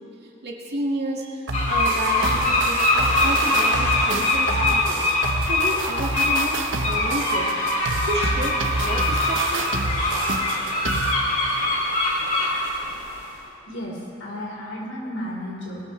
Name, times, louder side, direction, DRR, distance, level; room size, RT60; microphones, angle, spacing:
voice 1, 0.2-5.1 5.5-7.5 8.1-9.7, right 1 dB, 60° right, -1 dB, 2.2 m, -31 dB
sound 1, 1.5-13.2, left 2 dB, 40° left, 2.7 m, -23 dB
sound 2, 1.5-11.2, right 2 dB, 85° right, 1.1 m, -28 dB
voice 2, 13.7-15.8, equal, 85° left, -4 dB, 4.5 m, -33 dB
20.5 x 18.0 x 3.3 m, 2.6 s
head